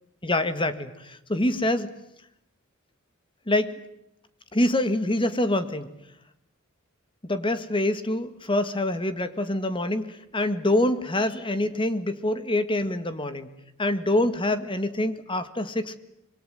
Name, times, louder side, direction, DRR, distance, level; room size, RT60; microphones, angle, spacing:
voice 1, 0.2-1.9 3.5-3.7 4.5-5.9 7.2-13.5 13.8-16.0, left 1 dB, 25° left, 11 dB, 1.9 m, -25 dB
26.0 x 23.5 x 9.5 m, 0.81 s
head